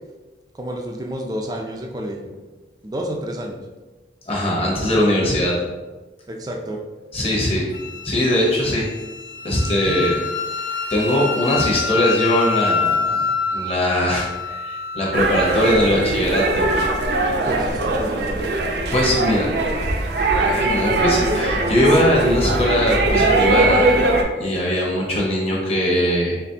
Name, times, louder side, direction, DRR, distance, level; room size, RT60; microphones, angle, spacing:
voice 1, 0.5-2.4 2.8-3.6 6.3-6.8 9.9-10.1 17.4-18.4, right 1 dB, 20° right, 1 dB, 0.4 m, -30 dB
voice 2, 4.3-5.6 7.1-7.7 8.0-8.8 9.4-10.2 10.9-13.3 13.5-16.7 18.9-19.5 20.4-23.9 24.4-26.4, left 1 dB, 35° left, -4 dB, 1.1 m, -20 dB
Wind instrument woodwind instrument, 7.7-15.9, left 5 dB, 90° left, 0.5 m, -26 dB
sound 1, 15.1-24.2, right 2 dB, 70° right, 0.6 m, -20 dB
4.1 x 4.0 x 2.8 m, 1.2 s
head